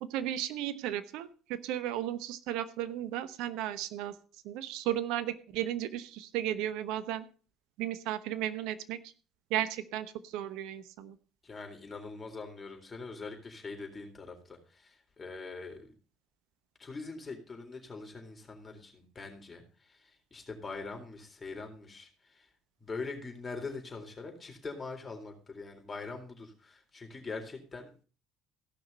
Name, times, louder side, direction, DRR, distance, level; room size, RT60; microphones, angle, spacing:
voice 1, 0.0-4.1 4.4-7.2 7.8-9.0 9.5-11.2, right 12 dB, 70° right, 14 dB, 0.9 m, -34 dB
voice 2, 11.4-15.9 16.8-22.5 22.8-27.9, left 3 dB, 30° left, 2 dB, 3.7 m, -43 dB
16.0 x 6.0 x 5.5 m, 0.38 s
hypercardioid pair, 60°, 0 cm